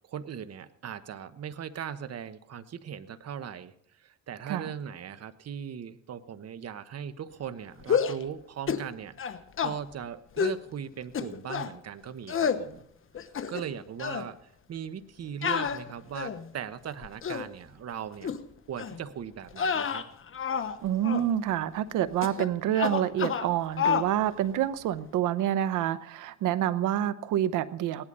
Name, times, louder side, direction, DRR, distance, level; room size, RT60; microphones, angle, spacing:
voice 1, 0.1-12.9 13.2-18.3 18.7-20.0, right 8 dB, 55° right, 12 dB, 1.2 m, -39 dB
sound 1, 7.8-8.2 8.7-8.9 9.2-9.7 10.4-10.6 11.1-11.7 12.3-12.6 13.1-13.7 14.0-14.3 15.4-16.5 17.0-17.5 18.2-18.4 18.8-19.0 19.5-20.8 21.0-21.3 22.2-22.5 22.7-23.5 23.8-24.1, left 7 dB, 45° left, 1.1 m, -29 dB
voice 2, 20.8-28.0, right 11 dB, 90° right, 14 dB, 0.9 m, -27 dB
18.0 x 11.5 x 5.5 m, 0.70 s
cardioid pair, 90°, 30 cm